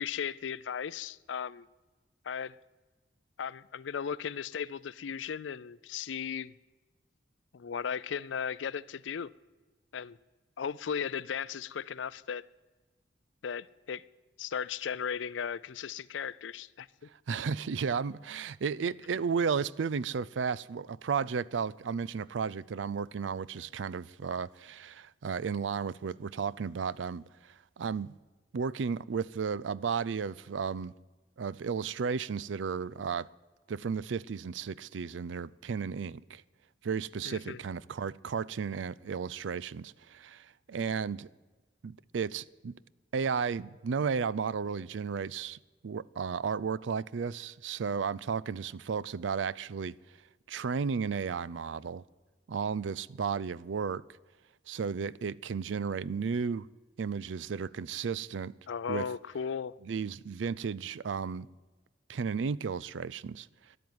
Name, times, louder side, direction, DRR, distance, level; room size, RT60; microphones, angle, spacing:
voice 1, 0.0-1.7 2.2-2.6 3.4-6.5 7.5-9.3 9.9-10.2 10.6-12.4 13.4-14.0 14.4-16.9 37.3-37.6 58.7-59.7, left 7 dB, 85° left, 0.5 m, -36 dB
voice 2, 17.3-28.2 28.5-30.9 31.4-33.3 33.7-36.4 36.8-41.3 41.8-42.8 43.1-45.6 45.8-50.0 50.5-52.0 52.5-54.0 54.7-56.7 57.0-58.5 58.9-59.0 59.8-61.5 62.1-63.5, right 6 dB, 90° right, 0.4 m, -33 dB
13.5 x 11.0 x 9.5 m
head